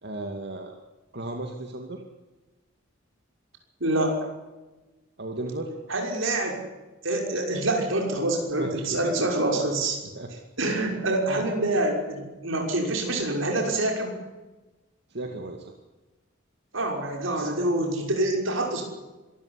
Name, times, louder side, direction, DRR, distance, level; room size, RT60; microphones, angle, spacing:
voice 1, 0.0-0.8 1.1-2.0 5.2-5.7 8.6-9.4 10.1-10.3 15.1-15.7, right 2 dB, 55° right, 3 dB, 2.4 m, -34 dB
voice 2, 3.8-4.1 5.9-6.6 7.0-10.0 10.6-14.2 16.7-18.8, right 2 dB, 75° right, 1 dB, 6.0 m, -26 dB
25.5 x 14.5 x 9.9 m, 1.2 s
head